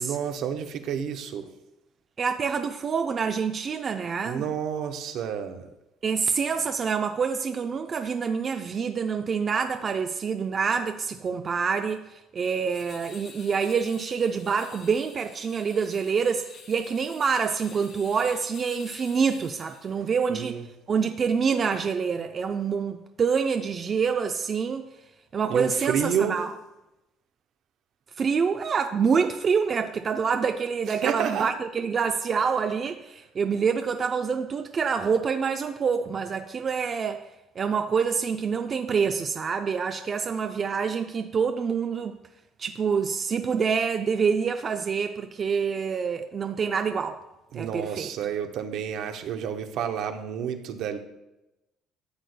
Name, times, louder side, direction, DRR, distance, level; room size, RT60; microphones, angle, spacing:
voice 1, 0.0-1.5 4.2-5.6 20.3-20.7 25.5-26.4 31.0-31.5 47.5-51.0, right 8 dB, 70° right, 0.9 m, -30 dB
voice 2, 2.2-4.4 6.0-20.6 20.9-24.9 25.3-26.5 28.2-37.3 37.6-42.2 42.6-47.2 47.5-48.1, right 6 dB, 40° right, 0.5 m, -26 dB
sound 1, 12.7-20.0, left 4 dB, 60° left, 2.0 m, -49 dB
13.5 x 7.6 x 2.2 m
supercardioid pair, 75°, 0 cm